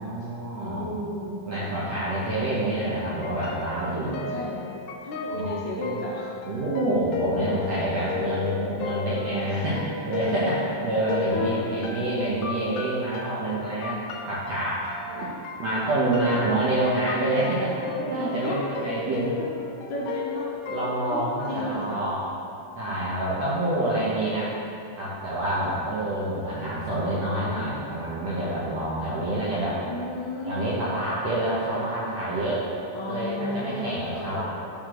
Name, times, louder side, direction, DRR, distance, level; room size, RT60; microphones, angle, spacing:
voice 1, 0.0-0.9 1.5-4.3 5.3-5.5 5.8-5.9 6.4-14.0 14.3-14.9 15.6-19.5 20.7-22.2 22.7-24.5 25.0-29.8 30.4-32.7 33.1-34.4, right 1 dB, 65° right, -8 dB, 1.7 m, -27 dB
voice 2, 0.6-1.8 4.0-4.7 5.0-6.3 7.3-7.8 9.4-9.6 11.3-11.9 15.1-15.3 16.2-16.5 18.4-18.6 19.9-20.5 21.1-22.0 25.6-25.8 29.7-30.9 32.9-34.4, left 1 dB, 65° left, -5 dB, 1.9 m, -34 dB
sound 1, 3.0-21.3, left 6 dB, 85° left, 2.4 m, -35 dB
9.6 x 3.7 x 5.9 m, 2.7 s
omnidirectional pair, 4.3 m